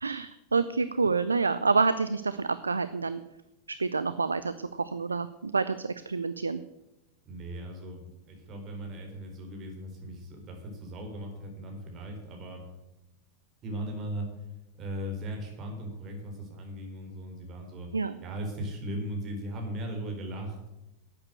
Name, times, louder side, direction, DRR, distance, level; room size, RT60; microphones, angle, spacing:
voice 1, 0.0-3.2 3.8-6.6 17.9-18.2, right 4 dB, 75° right, 13 dB, 0.5 m, -28 dB
voice 2, 7.3-12.6 13.6-14.3 14.8-17.9 18.2-20.7, right 1 dB, 30° right, 2 dB, 4.1 m, -38 dB
11.5 x 8.8 x 7.9 m, 0.93 s
figure-of-eight pair, 90°, 0 cm